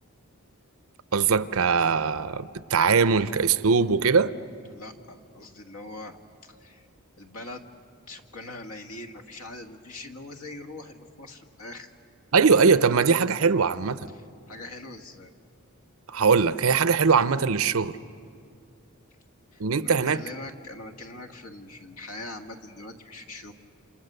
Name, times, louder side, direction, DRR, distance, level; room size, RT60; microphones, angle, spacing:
voice 1, 1.1-4.3 12.3-14.1 16.1-18.0 19.6-20.2, right 5 dB, 75° right, 0.7 m, -21 dB
voice 2, 4.7-6.9 7.2-7.6 8.1-11.9 14.1-15.3 19.5-23.5, left 2 dB, 80° left, 1.8 m, -42 dB
28.5 x 27.0 x 6.7 m
head